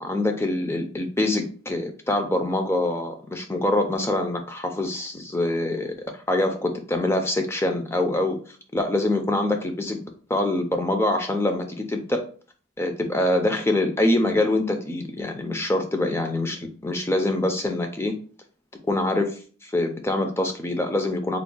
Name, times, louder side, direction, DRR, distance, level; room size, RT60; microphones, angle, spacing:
voice 1, 0.0-8.4 8.7-10.0 10.3-12.2 12.8-18.1 18.9-21.4, left 1 dB, 10° left, 5 dB, 0.5 m, -25 dB
3.5 x 2.1 x 3.8 m, 0.41 s
head